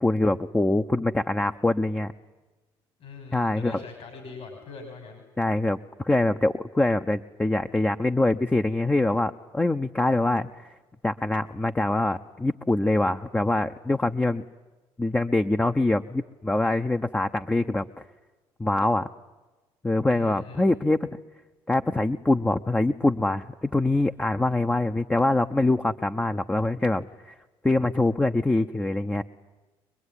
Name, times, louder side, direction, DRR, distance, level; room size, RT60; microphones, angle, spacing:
voice 1, 0.0-2.1 3.3-3.8 5.4-10.7 11.0-14.4 15.0-18.0 18.6-19.1 19.8-21.2 21.7-27.3 27.6-29.2, left 2 dB, 15° left, 6 dB, 0.9 m, -24 dB
voice 2, 3.0-5.2 20.1-20.7, left 4 dB, 65° left, 4 dB, 6.2 m, -42 dB
25.0 x 21.0 x 9.9 m, 1.2 s
supercardioid pair, 75°, 11 cm